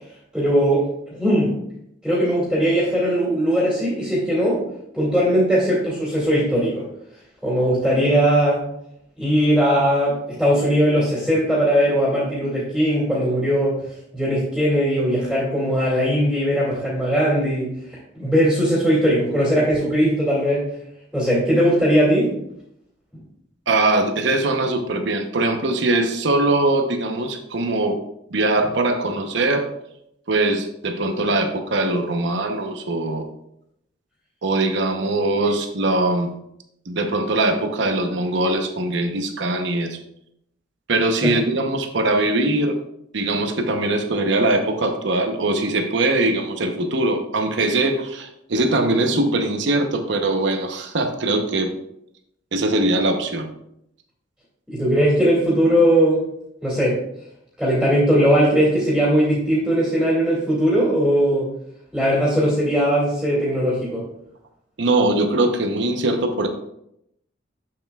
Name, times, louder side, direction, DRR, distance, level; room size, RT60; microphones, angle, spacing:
voice 1, 0.3-1.6 2.0-4.6 4.9-6.9 7.4-8.6 9.2-13.8 14.1-20.7 21.1-22.3 41.2-41.3 54.7-56.3 56.6-57.0 57.6-61.5 61.9-64.0, equal, ahead, -9 dB, 2.3 m, -19 dB
voice 2, 23.7-28.0 28.3-29.7 30.3-33.3 34.4-36.3 36.9-40.0 40.9-42.8 43.1-51.7 52.5-53.5 64.8-66.5, right 2 dB, 65° right, 5 dB, 0.8 m, -21 dB
7.8 x 7.5 x 2.3 m, 0.78 s
head